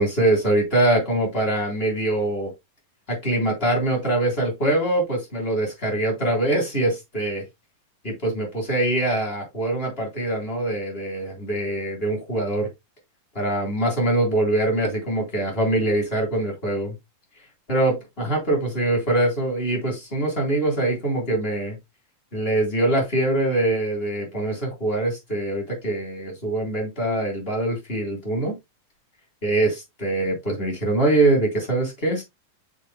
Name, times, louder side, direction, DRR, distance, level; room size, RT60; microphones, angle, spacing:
voice 1, 0.0-2.5 3.1-7.4 8.0-12.7 13.3-16.9 17.7-21.8 22.3-28.6 29.4-32.2, right 1 dB, 15° left, 3.6 m, -23 dB
8.1 x 7.0 x 2.3 m
omnidirectional pair, 4.0 m